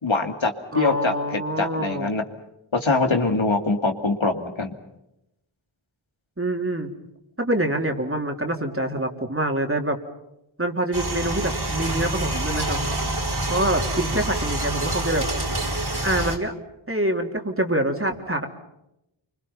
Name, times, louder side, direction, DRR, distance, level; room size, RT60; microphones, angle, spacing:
voice 1, 0.0-2.2 2.7-4.7, left 3 dB, 75° left, 4 dB, 2.6 m, -23 dB
voice 2, 0.7-2.1 6.4-6.9 7.4-10.0 10.6-12.8 13.5-15.2 16.0-16.5 16.9-18.5, right 1 dB, 25° right, 3 dB, 3.4 m, -25 dB
sound 1, 10.9-16.4, right 1 dB, 55° right, 4.0 m, -27 dB
29.5 x 25.0 x 5.7 m, 0.86 s
wide cardioid pair, 60°, 47 cm